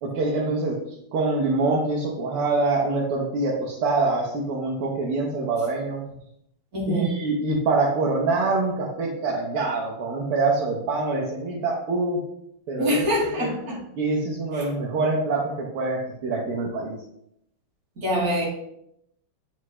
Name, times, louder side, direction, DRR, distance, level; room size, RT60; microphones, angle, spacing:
voice 1, 0.0-6.1 6.9-12.2 12.7-13.1 13.4-13.5 14.0-16.9, right 3 dB, 80° right, -3 dB, 1.9 m, -25 dB
voice 2, 6.7-7.1 12.8-13.8 14.5-14.6 18.0-18.5, equal, 40° right, -5 dB, 2.5 m, -25 dB
7.7 x 4.7 x 3.2 m, 0.76 s
omnidirectional pair, 2.4 m